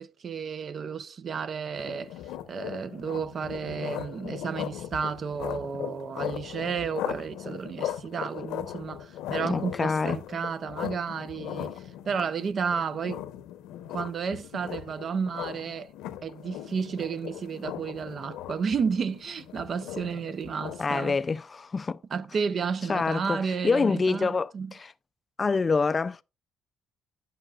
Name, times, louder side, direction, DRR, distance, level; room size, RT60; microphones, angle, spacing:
voice 1, 0.0-2.1 2.5-13.2 13.9-15.9 16.2-21.2 22.1-24.7, right 6 dB, 45° right, 0.6 m, -32 dB
sound 1, 1.8-20.9, left 11 dB, 85° left, 0.9 m, -38 dB
voice 2, 9.5-10.2 20.8-22.0 22.9-24.9 25.4-26.2, left 4 dB, 30° left, 0.4 m, -26 dB
16.5 x 5.7 x 2.4 m
cardioid pair, 105°, 0 cm